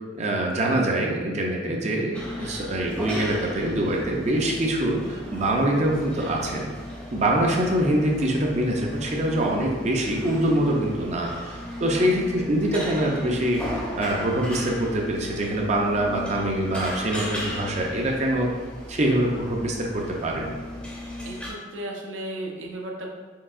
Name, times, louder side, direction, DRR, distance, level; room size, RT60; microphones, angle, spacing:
voice 1, 0.1-6.7 7.1-18.5 18.9-20.5, right 1 dB, 35° right, 0 dB, 0.5 m, -24 dB
sound 1, 2.1-21.5, left 1 dB, 5° left, 0.6 m, -36 dB
voice 2, 21.2-23.1, right 1 dB, 90° right, 0 dB, 0.7 m, -35 dB
4.5 x 3.4 x 2.4 m, 1.4 s
head